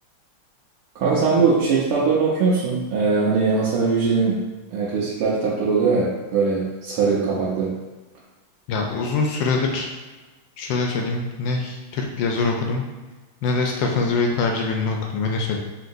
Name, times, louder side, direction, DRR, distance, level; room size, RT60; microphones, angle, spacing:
voice 1, 0.9-4.4 4.7-7.7, right 4 dB, 85° right, -7 dB, 1.7 m, -21 dB
voice 2, 8.7-9.9 10.6-12.9 13.4-15.6, left 3 dB, 75° left, 1 dB, 1.1 m, -23 dB
5.5 x 2.9 x 2.6 m, 1.2 s
omnidirectional pair, 2.4 m